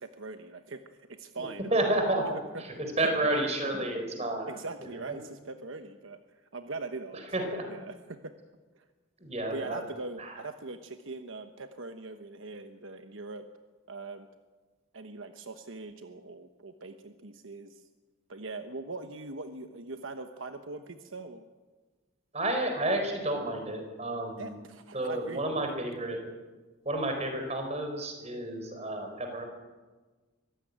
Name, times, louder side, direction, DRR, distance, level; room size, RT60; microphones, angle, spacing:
voice 1, 0.0-2.3 3.0-3.4 4.5-8.3 8.7-8.8 9.5-13.4 13.9-14.3 14.9-17.9 18.3-21.4 24.4-25.8, right 3 dB, 75° right, 8 dB, 1.1 m, -42 dB
voice 2, 1.4-4.5 4.8-5.2 7.3-7.6 9.2-9.8 10.2-10.4 22.3-24.6 24.9-26.2 26.8-29.4, right 1 dB, 30° right, 4 dB, 4.4 m, -31 dB
24.0 x 15.5 x 9.4 m, 1.3 s
head